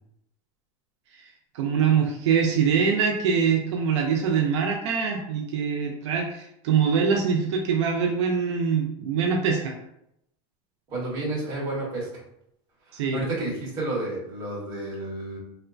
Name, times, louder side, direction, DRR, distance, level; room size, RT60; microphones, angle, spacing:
voice 1, 1.1-9.7 12.9-13.2, right 6 dB, 80° right, 1 dB, 0.4 m, -24 dB
voice 2, 10.9-12.1 12.9-15.4, right 2 dB, 30° right, -6 dB, 1.0 m, -31 dB
3.0 x 2.1 x 2.4 m, 0.79 s
supercardioid pair, 180°, 15 cm